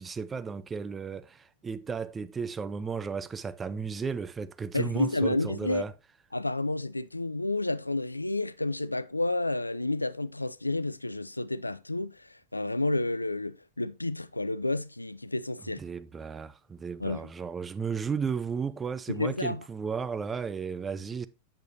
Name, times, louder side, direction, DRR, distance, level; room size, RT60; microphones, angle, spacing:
voice 1, 0.0-5.9 15.7-21.3, right 6 dB, 15° right, 0.4 m, -34 dB
voice 2, 4.7-5.8 6.3-15.8 17.0-17.2 19.1-19.6, left 2 dB, 85° left, 0.3 m, -30 dB
8.1 x 6.6 x 2.8 m
figure-of-eight pair, 90°, 0 cm